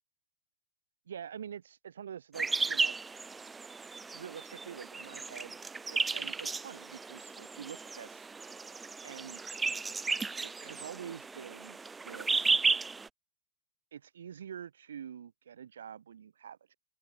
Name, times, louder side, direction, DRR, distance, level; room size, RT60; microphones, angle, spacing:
voice 1, 1.1-2.9 4.1-5.6 5.9-8.3 9.0-9.6 10.4-11.8 12.0-12.6 13.9-16.8, right 8 dB, 65° right, 0.4 m, -46 dB
sound 1, 2.4-13.1, right 4 dB, 15° right, 0.4 m, -34 dB
open air
figure-of-eight pair, 90°, 0 cm